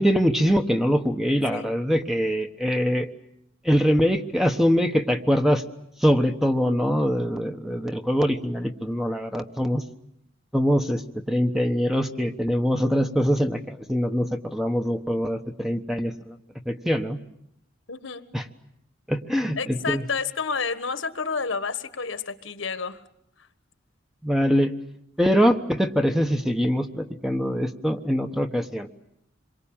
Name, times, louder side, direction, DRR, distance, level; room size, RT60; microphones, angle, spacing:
voice 1, 0.0-3.1 3.6-5.6 6.0-9.8 10.5-11.0 11.3-16.4 16.6-17.2 18.3-18.5 19.1-20.0 24.2-24.7 25.2-28.9, equal, ahead, 6 dB, 1.2 m, -23 dB
voice 2, 17.9-18.3 19.6-23.0, left 5 dB, 65° left, 11 dB, 1.5 m, -30 dB
27.0 x 23.5 x 8.9 m, 0.76 s
head